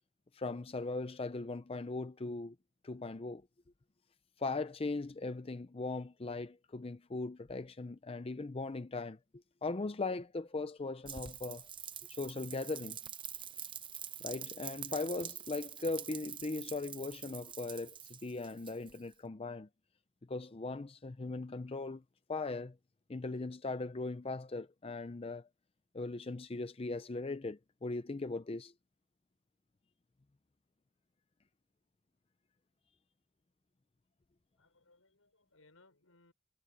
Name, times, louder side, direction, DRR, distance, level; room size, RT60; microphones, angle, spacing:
voice 1, 0.3-2.6 2.8-3.4 4.4-9.2 9.6-11.7 12.1-13.0 14.2-19.7 20.3-22.0 22.3-22.8 23.1-25.5 25.9-28.7, left 3 dB, 30° left, 0.5 m, -39 dB
Rain, 11.0-19.1, right 9 dB, 25° right, 0.8 m, -46 dB
voice 2, 34.6-36.3, left 2 dB, 90° left, 6.0 m, -66 dB
head